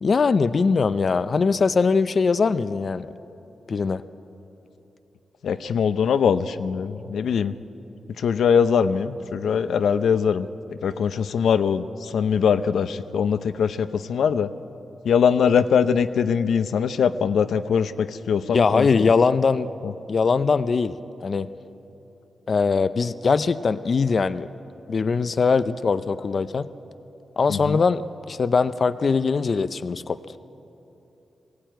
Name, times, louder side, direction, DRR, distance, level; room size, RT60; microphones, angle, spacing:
voice 1, 0.0-3.1 3.7-4.0 18.5-19.7 20.1-21.0 21.2-21.5 22.5-24.5 24.9-26.7 27.4-28.0 28.3-30.2, left 4 dB, 45° left, 13 dB, 0.5 m, -21 dB
voice 2, 5.4-7.5 8.2-14.5 15.0-18.9 19.8-19.9 27.5-27.8, left 7 dB, 85° left, 11 dB, 0.6 m, -22 dB
21.0 x 16.5 x 9.2 m, 2.9 s
wide cardioid pair, 125°, 0 cm